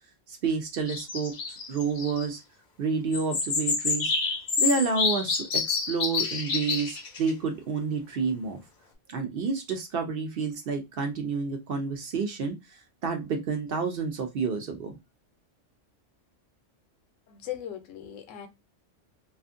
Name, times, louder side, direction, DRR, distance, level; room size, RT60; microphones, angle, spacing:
voice 1, 0.3-2.4 2.8-4.1 4.6-8.6 9.1-12.6 13.0-14.9, right 5 dB, 60° right, 0.6 m, -29 dB
sound 1, 0.9-2.2 3.1-7.3, left 5 dB, 55° left, 0.6 m, -28 dB
voice 2, 17.3-18.5, left 11 dB, 85° left, 1.0 m, -38 dB
2.5 x 2.4 x 2.4 m
omnidirectional pair, 1.3 m